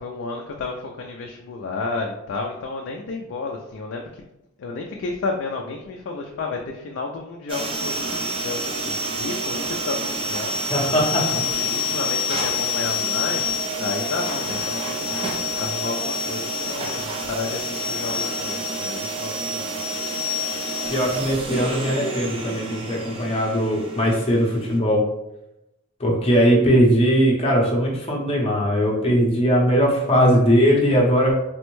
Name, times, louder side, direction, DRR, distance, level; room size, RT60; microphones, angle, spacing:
voice 1, 0.0-4.3 4.6-10.9 11.3-15.1 15.6-19.7 23.3-23.5, left 3 dB, 55° left, 1 dB, 0.3 m, -32 dB
sound 1, 7.5-24.8, left 2 dB, 25° right, 0.4 m, -27 dB
voice 2, 10.7-11.4 20.9-25.0 26.0-31.3, equal, 25° left, -2 dB, 0.7 m, -19 dB
3.4 x 2.1 x 3.0 m, 0.88 s
head